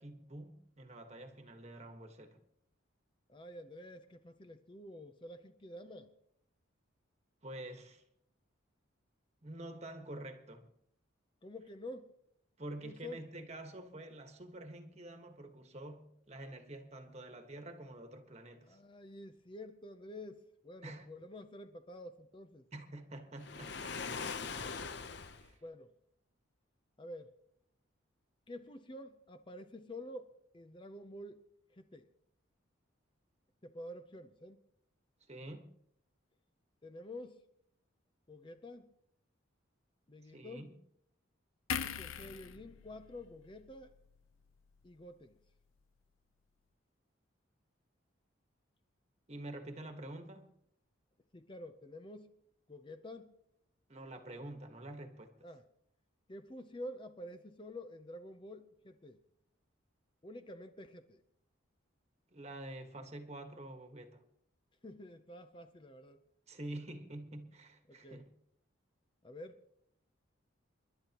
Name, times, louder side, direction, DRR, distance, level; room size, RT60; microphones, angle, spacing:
voice 1, 0.0-2.4 7.4-8.0 9.4-10.7 12.6-18.8 20.8-21.1 22.7-24.0 25.2-25.6 35.3-35.7 40.3-40.7 49.3-50.5 53.9-55.4 62.3-64.2 66.5-68.3, right 1 dB, 30° right, 1.4 m, -47 dB
voice 2, 3.3-6.2 11.4-12.1 12.8-13.2 18.6-22.7 25.6-25.9 27.0-27.4 28.5-31.4 31.7-32.1 33.6-34.6 36.8-37.4 38.3-38.9 40.1-40.8 41.8-43.9 44.8-45.4 51.3-52.3 52.7-53.4 55.4-55.6 56.3-59.2 60.2-61.2 64.8-66.2 67.9-68.2 69.2-69.6, left 1 dB, 25° left, 0.6 m, -49 dB
Waves surf, 23.4-25.5, left 5 dB, 55° left, 0.8 m, -41 dB
sound 1, 41.7-45.1 45.4-45.6, left 7 dB, 85° left, 0.7 m, -43 dB
29.0 x 11.5 x 3.0 m
head